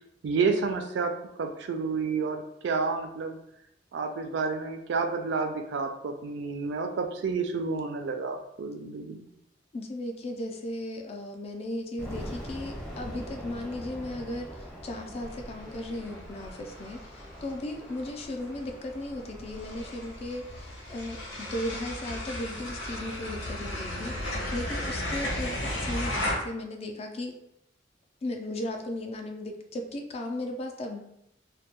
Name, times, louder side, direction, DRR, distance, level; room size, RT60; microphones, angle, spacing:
voice 1, 0.2-1.1 1.4-3.4 3.9-9.3, right 4 dB, 65° right, 6 dB, 0.3 m, -30 dB
voice 2, 9.7-27.3 28.2-31.0, left 1 dB, 35° left, 4 dB, 0.3 m, -36 dB
Torpedo launch, 12.0-22.9, equal, 10° left, 0.7 m, -44 dB
sound 1, 15.2-26.3, left 1 dB, 75° left, 0.7 m, -36 dB
2.2 x 2.1 x 2.8 m, 0.81 s
head